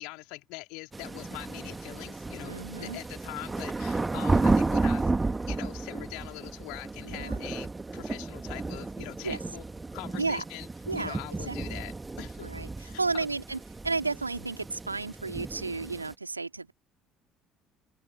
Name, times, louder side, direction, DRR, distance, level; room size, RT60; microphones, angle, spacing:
voice 1, 0.0-5.1 5.5-9.6 9.9-10.7 10.9-12.5 12.8-13.3, left 28 dB, 60° left, 2.9 m, -43 dB
sound 1, 0.9-16.1, right 3 dB, 15° right, 1.8 m, -32 dB
voice 2, 2.5-3.0 4.3-4.6 7.1-7.4 9.2-9.4 10.2-10.4 10.9-11.6 12.4-13.6 13.8-16.7, right 3 dB, 85° right, 2.5 m, -33 dB
open air
figure-of-eight pair, 55°, 0 cm